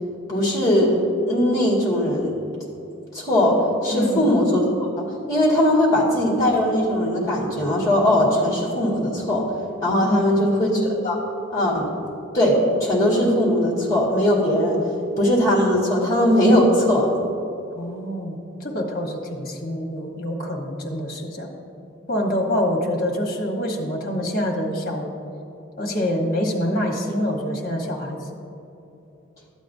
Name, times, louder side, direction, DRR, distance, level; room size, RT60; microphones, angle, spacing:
voice 1, 0.3-1.0 1.3-2.4 3.1-4.7 5.0-9.4 9.8-11.2 11.5-11.9 12.3-14.8 15.2-17.1, left 1 dB, 15° left, -4 dB, 1.8 m, -19 dB
voice 2, 3.9-4.3 10.0-10.5 17.7-21.5 22.1-25.1 25.8-28.2, left 1 dB, 45° left, 0 dB, 1.2 m, -26 dB
12.5 x 8.2 x 2.7 m, 2.9 s
head